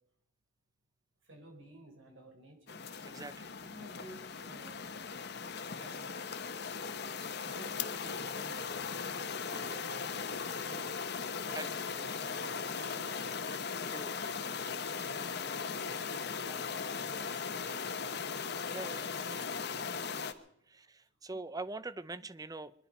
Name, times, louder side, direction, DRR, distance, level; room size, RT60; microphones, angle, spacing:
voice 1, 1.2-2.8 3.6-5.0 5.8-6.2 7.4-9.1 9.4-10.9 11.4-13.4 14.9-18.2 20.1-20.4 20.8-20.9, right 1 dB, 70° right, 4 dB, 4.7 m, -54 dB
sound 1, 2.7-20.3, left 5 dB, 55° left, 1.0 m, -38 dB
voice 2, 3.0-3.5 9.5-9.8 11.5-11.7 13.9-14.1 18.7-19.4 20.7-22.7, right 2 dB, 20° right, 16 dB, 0.5 m, -43 dB
23.5 x 11.5 x 5.4 m, 0.78 s
head